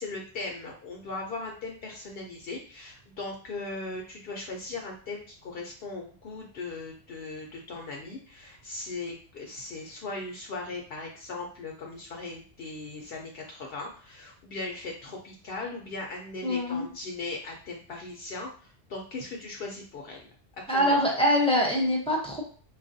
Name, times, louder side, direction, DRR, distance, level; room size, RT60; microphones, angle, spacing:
voice 1, 0.0-18.5 18.9-20.2 20.7-21.0, left 3 dB, 65° left, 0 dB, 0.8 m, -38 dB
voice 2, 16.4-16.9 20.7-22.4, equal, 5° left, -3 dB, 0.6 m, -24 dB
4.4 x 2.4 x 2.6 m, 0.43 s
omnidirectional pair, 1.1 m